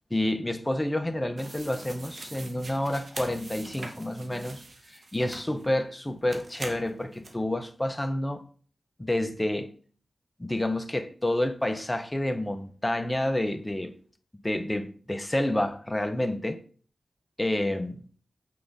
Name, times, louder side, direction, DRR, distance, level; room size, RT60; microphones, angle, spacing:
voice 1, 0.1-4.6 4.9-8.4 9.0-9.7 10.4-13.9 14.4-16.6 17.4-18.0, left 1 dB, 15° left, 0.6 m, -29 dB
sound 1, 1.4-5.7 6.3-7.3, right 2 dB, 55° right, 0.8 m, -43 dB
5.8 x 2.5 x 3.5 m
cardioid pair, 60°, 0 cm